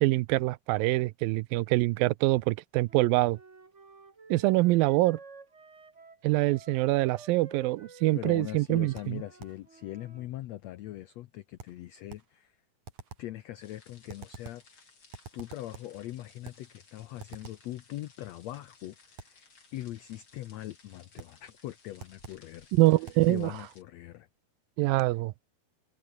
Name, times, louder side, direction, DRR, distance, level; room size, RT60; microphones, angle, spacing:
voice 1, 0.0-3.4 4.3-5.2 6.2-9.2 22.7-23.5 24.8-25.3, right 19 dB, 85° right, 2.4 m, -25 dB
Wind instrument woodwind instrument, 2.9-10.3, right 4 dB, 25° right, 1.9 m, -52 dB
voice 2, 8.2-12.6 13.2-14.6 15.3-22.7 23.3-24.3, left 14 dB, 90° left, 1.5 m, -41 dB
sound 1, 9.0-9.7 11.6-12.4 12.9-13.4 14.1-14.7 15.1-16.0 16.4-16.7 17.2-17.7 19.2-19.5 21.2-21.5 22.0-22.5 23.1-23.3, right 6 dB, 55° right, 4.6 m, -48 dB
sound 2, 13.6-23.8, left 4 dB, 35° left, 4.8 m, -60 dB
omnidirectional pair, 4.1 m